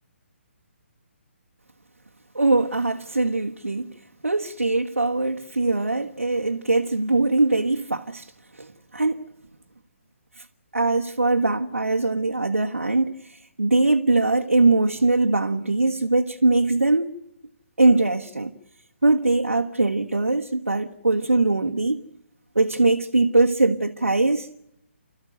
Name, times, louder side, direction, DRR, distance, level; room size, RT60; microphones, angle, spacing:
voice 1, 2.3-3.9 4.2-8.3 8.6-9.2 10.4-10.5 10.7-17.1 17.8-18.5 19.0-22.0 22.5-24.5, right 2 dB, 80° right, 1.4 m, -21 dB
29.5 x 14.0 x 9.2 m
figure-of-eight pair, 140°, 7 cm